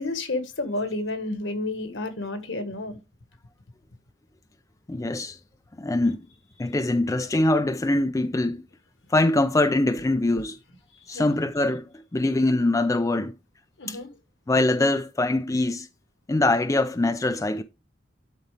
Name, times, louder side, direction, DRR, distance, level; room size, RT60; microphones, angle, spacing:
voice 1, 0.0-3.0 11.1-11.3 13.8-14.1, left 2 dB, 70° left, 1.5 m, -30 dB
voice 2, 4.9-5.4 5.8-6.2 6.6-8.6 9.1-10.6 11.1-13.3 13.9-14.0 14.5-15.9 16.3-17.6, left 2 dB, 15° left, 0.5 m, -23 dB
12.0 x 4.2 x 3.3 m
head